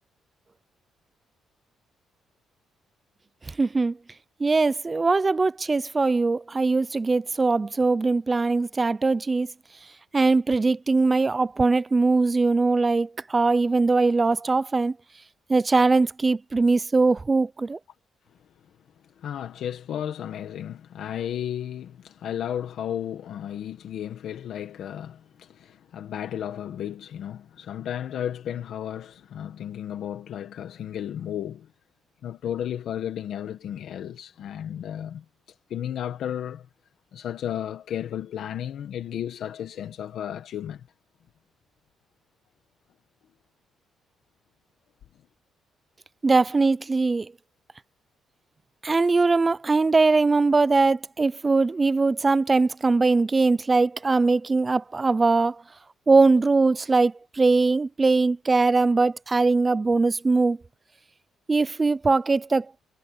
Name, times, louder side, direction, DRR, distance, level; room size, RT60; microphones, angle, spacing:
voice 1, 3.5-4.0 4.4-9.5 10.1-15.0 15.5-17.8 46.2-47.3 48.8-55.6 56.1-60.6 61.5-62.7, right 3 dB, 20° right, 0.3 m, -21 dB
voice 2, 19.2-31.7 32.2-35.2 35.7-36.7 37.1-40.8, left 10 dB, 60° left, 1.3 m, -33 dB
cardioid pair, 170°, 0 cm